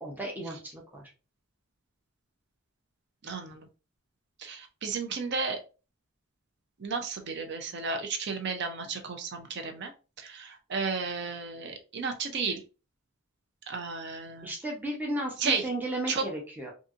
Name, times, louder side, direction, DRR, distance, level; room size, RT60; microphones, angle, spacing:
voice 1, 0.0-1.0 14.4-16.7, right 1 dB, 10° right, -2 dB, 0.6 m, -34 dB
voice 2, 3.2-3.7 4.4-5.6 6.8-9.9 10.2-12.6 13.7-14.5 15.4-15.7 16.1-16.2, right 4 dB, 55° right, 5 dB, 0.5 m, -33 dB
2.6 x 2.6 x 2.4 m, 0.33 s
head